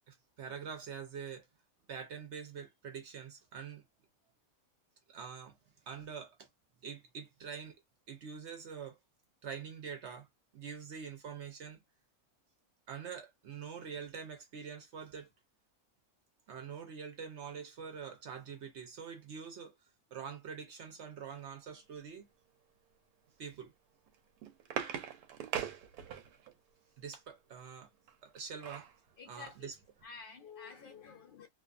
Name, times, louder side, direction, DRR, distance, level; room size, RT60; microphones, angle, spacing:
voice 1, 0.1-1.5 1.9-3.8 5.1-5.6 5.9-6.5 6.8-7.8 8.1-9.0 9.4-10.3 10.5-11.8 12.9-15.3 16.5-19.7 20.1-22.3 23.4-23.7 27.0-27.9 28.2-28.9 29.3-29.7, right 6 dB, 60° right, 0.8 m, -45 dB
sound 1, 24.1-26.5 28.1-29.0 29.5-29.6 29.8-30.1, right 8 dB, 85° right, 1.1 m, -41 dB
voice 2, 29.2-29.7 30.0-31.5, left 5 dB, 65° left, 0.5 m, -50 dB
2.5 x 2.4 x 2.4 m
omnidirectional pair, 1.6 m